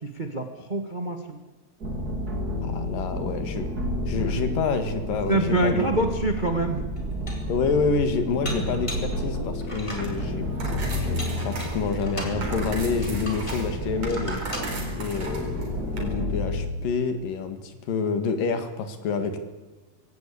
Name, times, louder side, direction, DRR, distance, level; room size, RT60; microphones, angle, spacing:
voice 1, 0.0-1.4 4.2-4.4 5.3-6.8 14.8-15.0, right 2 dB, 70° right, 6 dB, 0.4 m, -26 dB
sound 1, 1.8-16.7, left 1 dB, 30° right, 3.2 m, -31 dB
voice 2, 2.6-3.7 4.1-6.1 7.5-10.4 11.0-14.4 15.0-19.4, left 4 dB, 75° left, 9 dB, 3.6 m, -28 dB
Dishes pots and pans, 6.4-6.5 7.0-7.6 8.4-9.2 9.6-10.1 10.9-12.4 13.0-13.7 14.1-14.7, equal, 10° left, 3.7 m, -38 dB
sound 2, 9.9-16.0, right 3 dB, 45° right, 4.9 m, -38 dB
21.5 x 17.0 x 8.5 m, 1.2 s
omnidirectional pair, 4.0 m